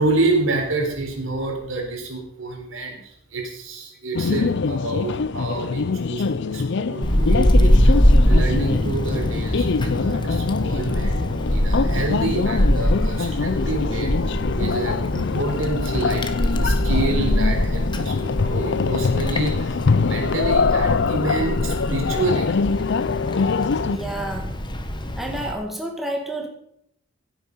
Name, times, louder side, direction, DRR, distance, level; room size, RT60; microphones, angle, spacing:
voice 1, 0.0-22.5, right 2 dB, 80° right, 1 dB, 4.2 m, -28 dB
sound 1, 4.1-24.0, left 4 dB, 60° left, 0.5 m, -24 dB
Wind, 7.0-25.5, equal, 25° left, 1.3 m, -22 dB
voice 2, 23.9-24.5 25.2-26.5, right 1 dB, ahead, 1 dB, 2.0 m, -29 dB
16.5 x 8.3 x 5.5 m, 0.73 s
head